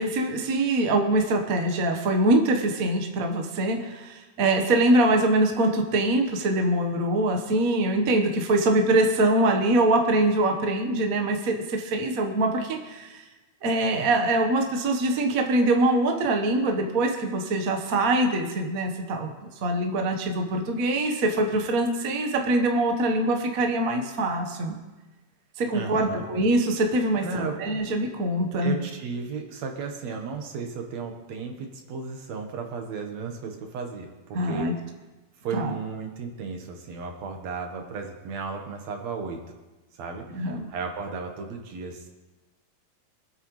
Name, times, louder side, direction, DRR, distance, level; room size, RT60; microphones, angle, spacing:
voice 1, 0.0-13.2 13.6-24.8 25.6-28.7 34.3-34.7 35.5-35.7 40.3-40.7, right 1 dB, 50° right, 3 dB, 1.0 m, -23 dB
voice 2, 25.7-26.2 27.2-27.5 28.6-34.7 35.4-39.4 40.0-40.2 40.7-42.1, right 5 dB, 70° right, 3 dB, 2.4 m, -34 dB
25.0 x 8.8 x 3.2 m, 1.2 s
omnidirectional pair, 3.3 m